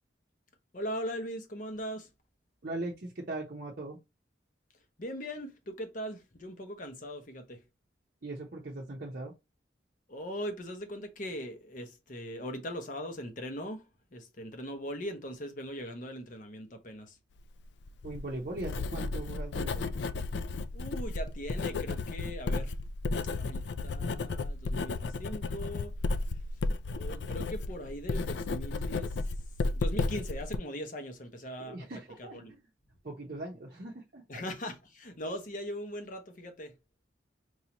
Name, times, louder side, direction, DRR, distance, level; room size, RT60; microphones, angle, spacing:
voice 1, 0.7-2.1 5.0-7.6 10.1-13.8 14.1-17.2 20.7-22.7 23.4-25.9 26.9-29.1 29.7-32.6 34.3-36.7, equal, 45° left, 0.9 m, -40 dB
voice 2, 2.6-4.0 8.2-9.3 18.0-19.9 31.6-32.6 33.0-34.4, right 2 dB, 50° right, 0.7 m, -40 dB
Writing, 17.8-30.6, left 3 dB, 65° left, 0.4 m, -33 dB
4.7 x 2.7 x 2.9 m
head